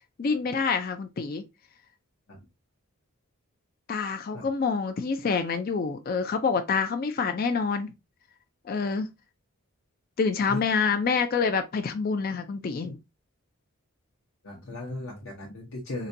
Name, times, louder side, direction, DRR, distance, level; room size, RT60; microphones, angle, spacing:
voice 1, 0.2-1.4 3.9-7.9 8.7-9.1 10.2-13.0, left 5 dB, 40° left, 0.3 m, -27 dB
voice 2, 14.4-16.1, left 1 dB, 65° left, 0.7 m, -37 dB
3.9 x 2.2 x 2.6 m
head